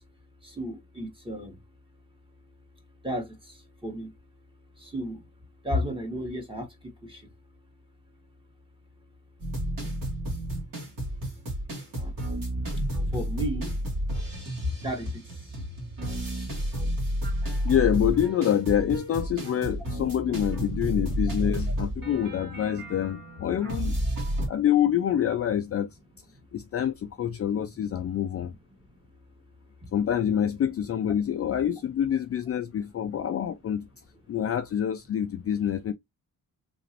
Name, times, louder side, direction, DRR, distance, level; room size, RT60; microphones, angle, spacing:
voice 1, 0.4-1.5 3.0-3.2 3.8-4.1 4.8-5.2 5.6-6.7 7.0-7.2 11.9-12.1 12.6-12.7 13.1-13.8 14.3-14.4 14.8-15.1, equal, 15° right, 1.5 m, -32 dB
sound 1, 9.4-24.5, equal, 65° right, 2.0 m, -31 dB
voice 2, 17.6-23.9 24.5-25.9 26.5-28.5 29.9-33.9 34.3-35.9, left 9 dB, 40° left, 0.4 m, -26 dB
3.9 x 2.9 x 2.9 m
wide cardioid pair, 135°, 35 cm